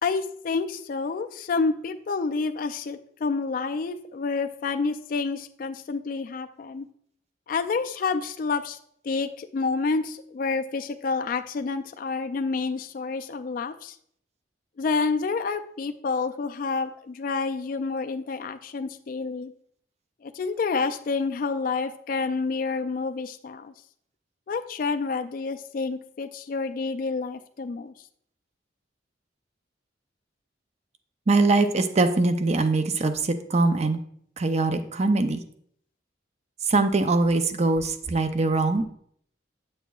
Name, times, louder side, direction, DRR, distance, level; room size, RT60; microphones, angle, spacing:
voice 1, 0.0-6.9 7.5-8.8 9.0-14.0 14.8-19.5 20.2-23.7 24.5-27.9, left 4 dB, 50° left, 7 dB, 0.3 m, -29 dB
voice 2, 31.3-34.0 34.4-35.4 36.7-38.9, right 3 dB, 35° right, 9 dB, 0.5 m, -22 dB
9.0 x 6.5 x 2.4 m, 0.66 s
head